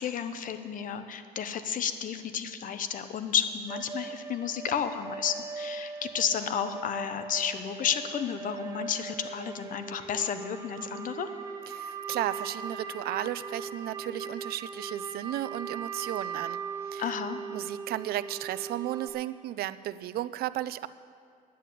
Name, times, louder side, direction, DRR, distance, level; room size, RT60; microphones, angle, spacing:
voice 1, 0.0-11.3 17.0-17.4, left 8 dB, 50° left, 10 dB, 0.9 m, -32 dB
sound 1, 3.7-19.1, right 5 dB, 20° right, 1.3 m, -39 dB
voice 2, 11.7-16.6 16.9-17.1 17.5-20.9, right 13 dB, 65° right, 15 dB, 0.5 m, -34 dB
10.0 x 8.4 x 8.3 m, 2.2 s
cardioid pair, 110°, 17 cm